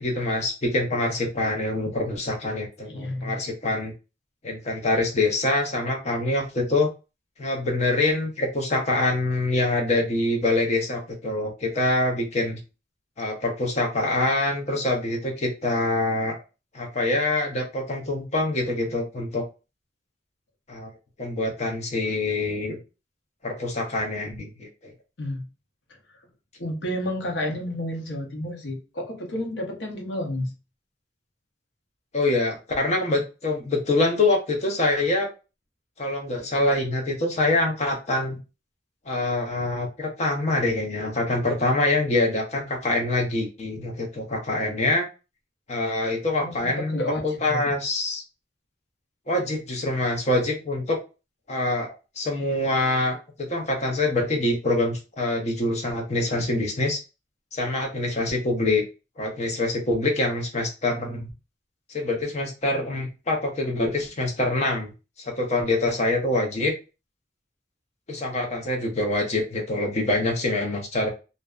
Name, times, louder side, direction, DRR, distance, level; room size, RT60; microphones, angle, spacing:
voice 1, 0.0-3.9 4.4-6.9 7.4-12.6 13.2-16.4 16.7-19.4 20.7-20.9 21.2-22.8 23.4-24.9 32.1-35.3 36.0-38.4 39.1-45.1 45.7-47.0 47.2-48.2 49.3-51.0 51.5-57.0 57.5-58.8 59.2-61.3 61.9-64.9 65.2-66.7 68.1-71.1, left 2 dB, 40° left, 2 dB, 0.6 m, -25 dB
voice 2, 2.9-3.4 25.2-25.5 26.6-30.5 46.4-47.7, left 1 dB, 75° left, 0 dB, 0.8 m, -31 dB
2.6 x 2.1 x 2.3 m, 0.30 s
head